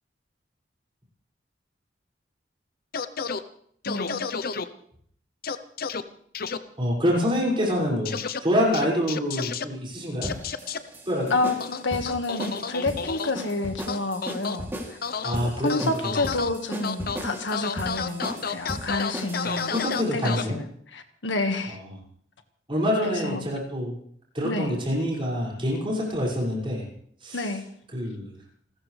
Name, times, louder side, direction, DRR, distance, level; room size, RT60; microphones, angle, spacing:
sound 1, 2.9-3.4 3.8-4.6 5.4-6.0 6.3-6.6 8.0-8.4 8.7-9.6 10.2-10.8 11.6-13.3 13.9-14.6 15.0-15.4 15.7-16.5 16.8-17.2 17.5-20.4, left 5 dB, 55° left, 0.8 m, -30 dB
voice 1, 3.8-4.3 11.3-15.0 15.4-20.6 20.9-21.8 23.0-23.4 24.4-24.7 27.3-27.6, left 2 dB, 85° left, 6 dB, 1.8 m, -29 dB
voice 2, 6.8-10.3 11.1-11.3 15.2-16.2 19.4-20.6 21.7-22.0 22.7-24.0 24.3-26.9 27.2-27.4 27.9-28.3, equal, 30° right, -4 dB, 6.3 m, -26 dB
sound 2, 10.2-20.1, equal, 15° right, 3.0 m, -36 dB
29.5 x 13.5 x 3.4 m, 0.64 s
head